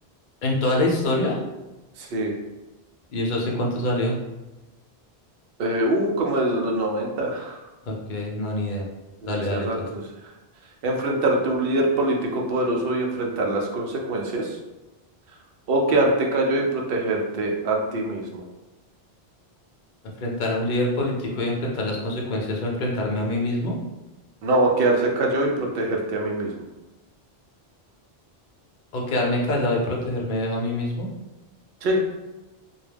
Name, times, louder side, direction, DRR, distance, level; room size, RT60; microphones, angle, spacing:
voice 1, 0.4-1.4 3.1-4.2 7.9-8.8 9.3-9.7 20.2-23.8 28.9-31.1, left 1 dB, 55° left, -2 dB, 0.7 m, -25 dB
voice 2, 2.0-2.3 5.6-7.6 9.2-10.0 10.8-14.6 15.7-18.5 24.4-26.5 31.8-32.0, right 1 dB, 70° right, 0 dB, 0.7 m, -23 dB
2.2 x 2.1 x 3.3 m, 1.0 s
omnidirectional pair, 1.1 m